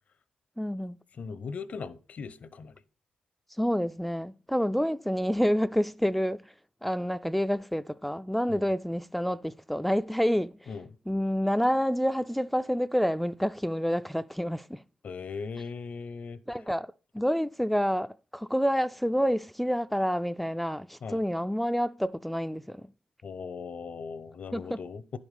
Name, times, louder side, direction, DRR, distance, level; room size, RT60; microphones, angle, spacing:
voice 1, 0.6-1.0 3.6-6.5 6.8-10.7 11.1-14.8 16.5-22.9 24.5-24.8, equal, 5° left, 0.3 m, -28 dB
voice 2, 1.2-2.7 8.5-8.6 10.7-10.9 15.0-16.4 21.0-21.2 23.2-25.2, left 5 dB, 60° left, 0.7 m, -38 dB
10.5 x 5.3 x 4.9 m
cardioid pair, 65°, 3 cm